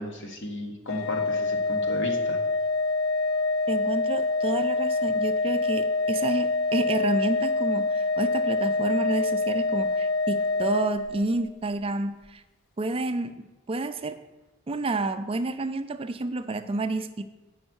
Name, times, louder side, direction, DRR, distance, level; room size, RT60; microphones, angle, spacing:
voice 1, 0.0-2.4, left 1 dB, 65° left, 2 dB, 1.4 m, -34 dB
Organ, 0.9-11.6, left 3 dB, 85° left, 0.5 m, -26 dB
voice 2, 3.7-12.4 12.8-14.2 14.7-17.2, right 2 dB, 30° right, 9 dB, 0.4 m, -29 dB
8.2 x 5.3 x 6.2 m, 1.1 s
head